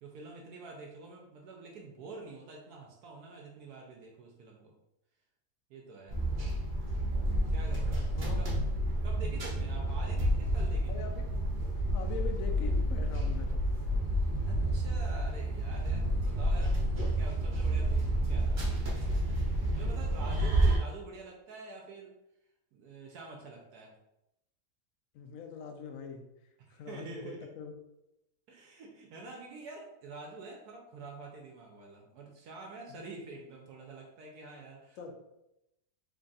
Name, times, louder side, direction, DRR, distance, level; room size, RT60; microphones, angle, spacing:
voice 1, 0.0-4.7 5.7-6.2 7.5-8.6 9.0-11.1 13.8-13.9 14.4-16.8 17.1-18.9 19.8-22.1 22.7-24.0 26.6-27.5 28.5-35.1, right 3 dB, 75° right, 0 dB, 1.1 m, -47 dB
sound 1, 6.1-20.8, right 1 dB, 40° right, 0.8 m, -30 dB
voice 2, 7.5-7.8 8.2-8.4 10.9-11.3 11.9-13.6 25.1-26.2 26.7-27.7 32.9-33.1 35.0-35.1, left 5 dB, 70° left, 5 dB, 0.8 m, -43 dB
3.4 x 2.4 x 3.9 m, 0.88 s
omnidirectional pair, 1.8 m